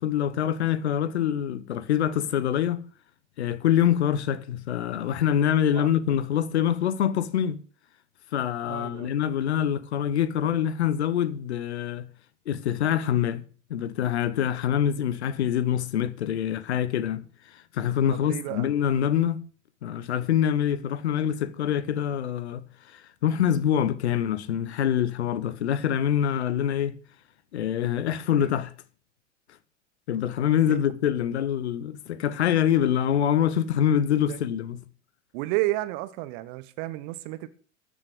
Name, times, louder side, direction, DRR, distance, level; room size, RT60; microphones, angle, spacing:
voice 1, 0.0-2.8 3.4-7.6 8.3-12.1 12.5-13.4 13.7-17.3 17.7-19.4 19.8-22.7 22.9-27.0 27.5-28.7 30.1-34.8, left 9 dB, 65° left, 1.1 m, -25 dB
voice 2, 8.7-9.2 18.1-18.7 28.4-28.5 30.7-30.8 34.3-34.4 35.3-37.5, right 18 dB, 45° right, 1.1 m, -32 dB
14.0 x 6.5 x 7.7 m
figure-of-eight pair, 85°, 36 cm